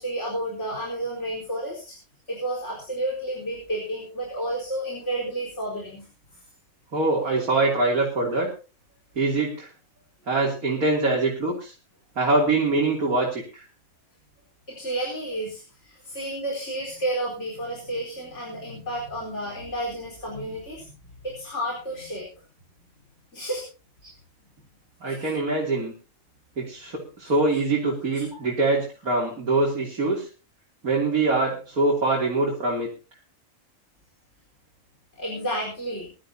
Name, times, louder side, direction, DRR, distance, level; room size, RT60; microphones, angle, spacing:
voice 1, 0.0-1.9 2.3-6.1 14.7-20.9 21.2-22.3 23.3-23.6 25.1-25.2 28.3-28.4 35.2-36.1, right 1 dB, 55° left, -4 dB, 4.9 m, -31 dB
voice 2, 6.9-8.5 9.2-9.7 10.3-11.7 12.2-13.6 24.0-24.1 25.0-25.9 26.6-30.3 30.8-32.9, right 2 dB, 85° right, -3 dB, 3.7 m, -24 dB
22.5 x 12.5 x 2.9 m, 0.35 s
omnidirectional pair, 1.5 m